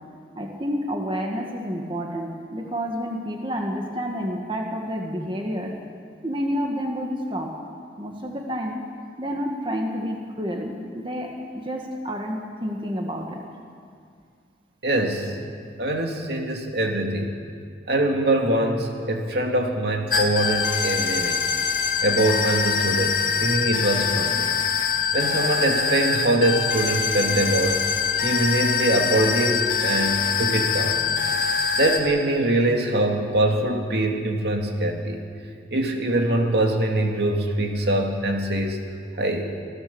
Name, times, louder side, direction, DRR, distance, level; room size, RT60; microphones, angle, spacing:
voice 1, 0.4-5.7 6.2-7.5 8.0-8.8 9.2-13.4, equal, 25° right, 1 dB, 1.9 m, -29 dB
voice 2, 14.8-15.4 15.8-17.4 17.9-21.4 22.0-24.5 25.1-27.8 28.1-31.0 31.8-35.2 35.7-38.8 39.2-39.5, right 1 dB, 65° right, 2 dB, 2.4 m, -23 dB
sound 1, 20.1-32.0, left 6 dB, 50° left, 2.3 m, -24 dB
26.5 x 16.5 x 7.1 m, 2.3 s
head